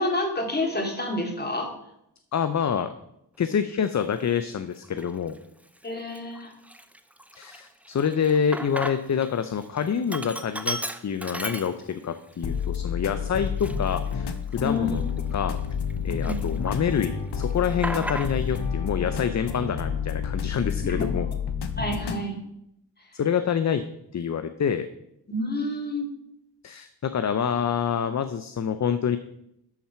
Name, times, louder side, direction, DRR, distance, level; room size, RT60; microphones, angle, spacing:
voice 1, 0.0-1.7 5.8-6.5 14.6-15.0 16.0-16.4 20.9-21.3 21.8-22.4 25.3-26.1, left 1 dB, 25° left, 1 dB, 2.6 m, -29 dB
voice 2, 2.3-2.9 3.4-5.4 7.3-15.0 15.3-15.6 16.0-21.3 23.1-23.8 24.1-24.9 26.6-29.2, left 7 dB, 40° left, 10 dB, 0.6 m, -27 dB
Sink (filling or washing), 4.0-4.2 4.8-5.4 5.8-5.9 6.1-9.3 9.6-12.2 12.6-12.7 13.4-15.9 16.2-17.0 17.3-18.6, right 1 dB, 5° right, 0.6 m, -36 dB
hip hop loop with electric piano drums and bass, 12.4-22.2, left 7 dB, 65° left, 1.0 m, -30 dB
11.5 x 4.2 x 5.7 m, 0.79 s
cardioid pair, 65°, 42 cm